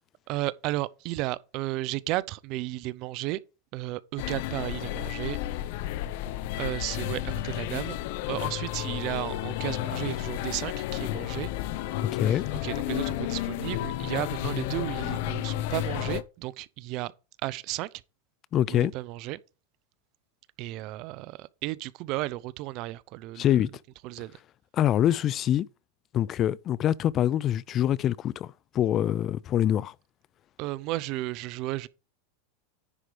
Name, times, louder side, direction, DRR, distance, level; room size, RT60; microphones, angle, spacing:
voice 1, 0.3-3.4 3.7-5.4 6.6-8.0 8.3-11.5 12.3-17.1 17.4-17.9 18.7-19.4 20.6-23.6 24.0-24.3 30.6-31.9, right 18 dB, 50° right, 0.5 m, -33 dB
sound 1, 4.2-16.2, left 14 dB, 60° left, 0.7 m, -32 dB
voice 2, 12.0-12.5 18.5-18.9 23.4-23.7 24.7-25.7 26.1-29.9, left 11 dB, 35° left, 0.4 m, -25 dB
10.0 x 4.7 x 5.0 m
hypercardioid pair, 120°, 0 cm